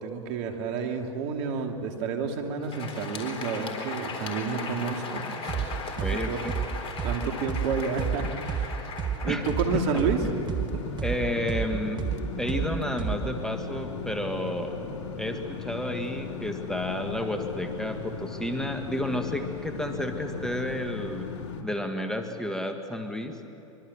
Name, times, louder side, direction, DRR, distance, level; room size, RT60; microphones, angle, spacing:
voice 1, 0.0-5.7 6.0-6.4 7.0-8.8 9.1-10.2 10.7-10.8, right 5 dB, 55° right, 4 dB, 2.8 m, -30 dB
Crowd, 2.5-11.0, left 4 dB, 35° left, 4.0 m, -38 dB
sound 1, 5.5-5.7 6.0-9.7 10.0-13.4, right 8 dB, 25° right, 1.9 m, -30 dB
voice 2, 6.0-6.5 9.3-9.8 11.0-12.0 12.4-14.8 15.2-21.3 21.6-23.3, left 1 dB, 5° left, 5 dB, 1.8 m, -31 dB
sound 2, 9.4-21.6, left 5 dB, 60° left, 2.9 m, -37 dB
24.0 x 23.5 x 7.2 m, 3.0 s
hypercardioid pair, 100°, 17 cm